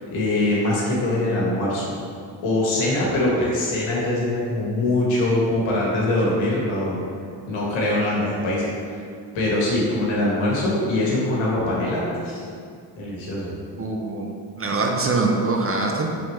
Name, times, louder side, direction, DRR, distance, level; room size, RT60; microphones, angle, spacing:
voice 1, 0.1-1.9 2.4-7.0 7.5-8.7 9.3-12.4 13.0-13.5, left 1 dB, 85° left, -5 dB, 1.4 m, -23 dB
voice 2, 13.8-16.1, right 3 dB, 30° right, 1 dB, 0.6 m, -23 dB
4.8 x 3.5 x 3.1 m, 2.3 s
cardioid pair, 70°, 45 cm